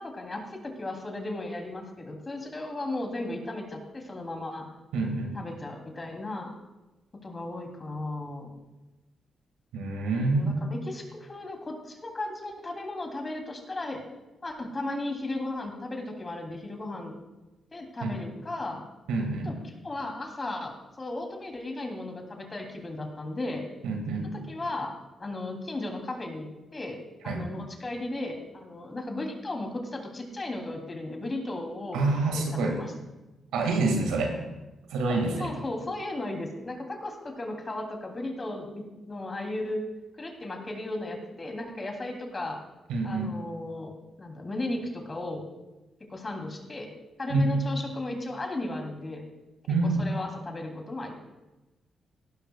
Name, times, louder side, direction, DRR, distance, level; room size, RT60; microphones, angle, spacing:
voice 1, 0.0-4.7 5.3-6.6 7.2-8.5 10.3-14.0 14.4-17.1 17.7-18.8 19.4-19.5 19.8-23.6 24.3-32.0 32.3-32.9 35.4-39.8 40.2-42.6 43.0-43.9 44.2-45.5 46.1-46.9 47.2-49.2 49.8-51.2, left 2 dB, 35° left, 2 dB, 3.0 m, -35 dB
voice 2, 4.9-5.4 9.7-10.5 18.0-18.2 19.1-19.5 23.8-24.3 27.2-27.4 31.9-32.8 33.5-34.4 34.9-35.5 42.9-43.4 47.3-47.5 49.7-50.0, right 3 dB, 90° right, 3 dB, 2.0 m, -27 dB
16.0 x 12.0 x 2.4 m, 1.1 s
supercardioid pair, 55°, 0 cm